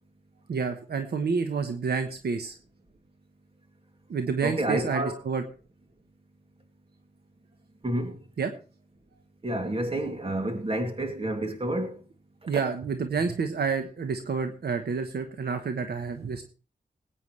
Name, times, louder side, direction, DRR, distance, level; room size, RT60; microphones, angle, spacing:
voice 1, 0.5-2.5 4.1-5.4 8.4-8.5 12.5-16.4, right 5 dB, 75° right, 1.1 m, -29 dB
voice 2, 4.4-5.2 7.8-8.2 9.4-12.0, right 1 dB, 35° right, 2.6 m, -29 dB
19.5 x 9.1 x 3.3 m
wide cardioid pair, 75°, 17 cm